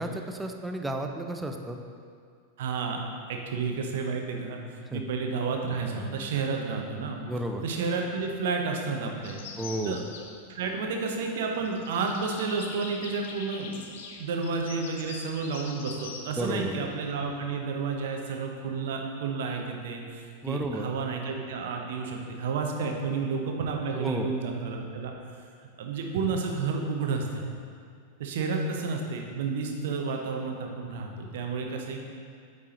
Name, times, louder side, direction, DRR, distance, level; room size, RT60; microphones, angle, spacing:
voice 1, 0.0-1.8 4.9-5.0 7.3-7.6 9.6-10.0 16.4-16.8 20.4-20.9 23.9-24.3, right 1 dB, 5° right, 4 dB, 0.5 m, -32 dB
voice 2, 2.6-3.0 3.3-7.2 7.6-9.4 9.8-10.0 10.5-13.9 14.2-25.1 25.8-27.7 28.2-32.0, right 4 dB, 55° right, 2 dB, 0.7 m, -31 dB
sound 1, 9.2-18.1, left 5 dB, 55° left, 0.6 m, -45 dB
8.2 x 4.8 x 2.9 m, 2.2 s
figure-of-eight pair, 90°, 0 cm